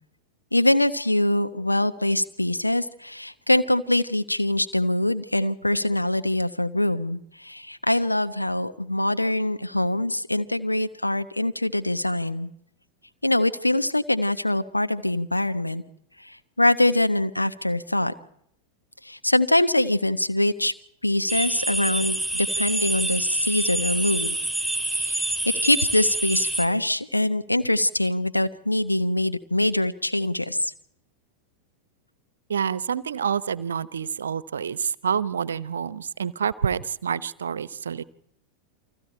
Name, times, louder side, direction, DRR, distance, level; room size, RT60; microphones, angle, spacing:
voice 1, 0.5-12.5 13.2-15.8 16.2-18.1 19.0-20.7 21.0-24.4 24.9-30.7, left 1 dB, 85° left, 10 dB, 1.1 m, -24 dB
sound 1, 21.3-26.7, right 2 dB, 5° left, 4.1 m, -27 dB
voice 2, 32.5-38.0, right 7 dB, 70° right, 19 dB, 0.8 m, -28 dB
29.0 x 24.5 x 4.5 m, 0.74 s
figure-of-eight pair, 90°, 0 cm